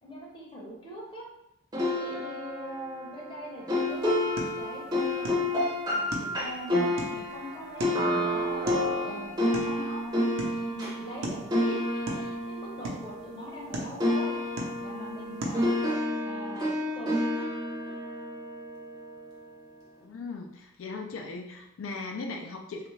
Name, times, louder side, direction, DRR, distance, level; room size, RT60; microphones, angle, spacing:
voice 1, 0.0-1.3 1.8-4.2 4.6-4.9 5.2-8.6 9.0-10.0 10.4-14.4 14.8-15.7 16.2-17.1, equal, 25° left, -3 dB, 0.6 m, -42 dB
sound 1, 1.7-13.7 14.0-19.2, left 1 dB, 20° right, 0.6 m, -30 dB
sound 2, 3.9-15.9, right 1 dB, 85° right, 0.7 m, -41 dB
voice 2, 20.0-22.9, left 3 dB, 80° left, 3 dB, 0.4 m, -38 dB
3.2 x 2.4 x 3.1 m, 0.87 s
head